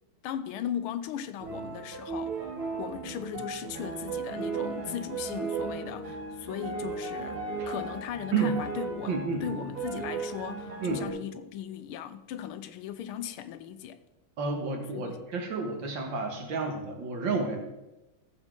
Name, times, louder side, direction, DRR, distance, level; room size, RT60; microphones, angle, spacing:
voice 1, 0.2-2.4 2.8-14.0 14.9-15.2, left 10 dB, 90° left, 1.6 m, -38 dB
sound 1, 1.4-11.1, right 4 dB, 90° right, 3.0 m, -36 dB
voice 2, 9.1-9.4 10.8-11.1 14.4-17.6, right 4 dB, 65° right, 2.1 m, -30 dB
14.5 x 7.3 x 3.7 m
omnidirectional pair, 2.3 m